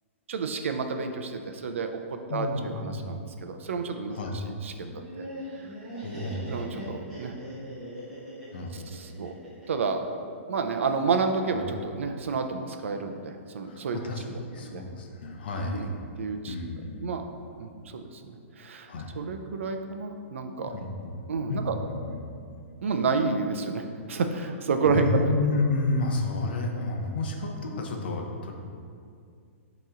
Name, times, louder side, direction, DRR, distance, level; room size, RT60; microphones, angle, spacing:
voice 1, 0.3-4.2 4.6-5.3 6.5-7.3 8.9-9.3 9.7-10.0 10.5-14.0 14.7-14.8 15.7-15.9 16.2-16.5 17.0-17.3 17.6-18.9 19.2-20.7 21.3-21.7 22.8-23.8 24.1-25.2, right 5 dB, 65° right, 6 dB, 0.5 m, -30 dB
voice 2, 2.3-3.1 4.1-4.4 6.0-6.9 8.5-8.9 11.5-11.6 13.6-16.0 16.5-17.1 18.9-19.2 20.6-21.2 21.5-22.2 24.8-28.5, left 2 dB, 45° left, 1 dB, 0.7 m, -31 dB
Laughter, 4.8-9.9, equal, 5° right, 1.0 m, -40 dB
8.3 x 3.1 x 3.7 m, 2.3 s
hypercardioid pair, 180°, 7 cm